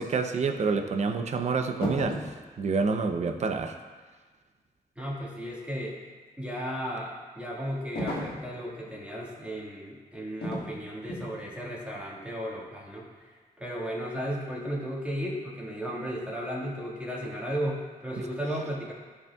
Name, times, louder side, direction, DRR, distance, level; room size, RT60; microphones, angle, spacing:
voice 1, 0.0-2.2 2.6-3.8, right 4 dB, 45° right, 7 dB, 0.6 m, -27 dB
sound 1, 1.8-2.4 8.0-8.5 10.4-10.7 11.1-11.4, left 1 dB, 80° left, 1.5 m, -33 dB
voice 2, 5.0-6.0 6.4-18.9, equal, 10° right, -4 dB, 1.7 m, -35 dB
13.0 x 5.6 x 2.3 m, 1.4 s
wide cardioid pair, 120°, 16 cm